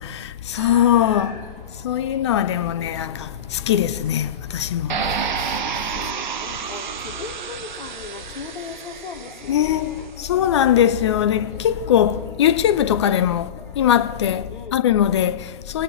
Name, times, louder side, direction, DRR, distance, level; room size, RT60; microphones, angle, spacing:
voice 1, 0.0-1.4 1.8-5.0 9.5-15.8, left 10 dB, 30° left, 0.5 m, -21 dB
sound 1, 0.6-12.3, right 1 dB, 25° right, 4.6 m, -46 dB
sound 2, 4.9-9.9, right 7 dB, 50° right, 0.8 m, -29 dB
voice 2, 5.9-10.1 14.5-14.8, left 6 dB, 55° left, 1.4 m, -38 dB
sound 3, 8.3-14.4, left 5 dB, 10° left, 1.6 m, -46 dB
25.5 x 9.6 x 3.1 m
figure-of-eight pair, 125°, 29 cm